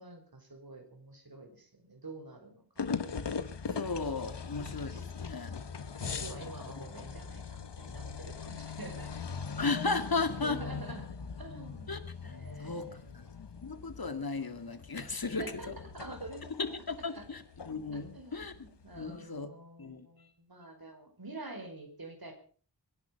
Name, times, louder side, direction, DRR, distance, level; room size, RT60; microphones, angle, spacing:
voice 1, 0.0-2.9 4.9-5.0 6.0-9.3 10.4-11.0 11.4-13.2 15.2-15.7 15.9-16.5 17.1-17.2 18.1-22.3, right 2 dB, 60° right, 5 dB, 5.1 m, -47 dB
sound 1, 2.8-19.2, left 5 dB, 90° left, 1.2 m, -41 dB
voice 2, 3.7-5.6 9.6-10.6 11.9-13.2 13.6-15.7 16.6-18.5 19.0-19.5 19.8-20.1, left 3 dB, 60° left, 10 dB, 2.2 m, -35 dB
24.0 x 10.5 x 5.2 m, 0.43 s
wide cardioid pair, 60°, 40 cm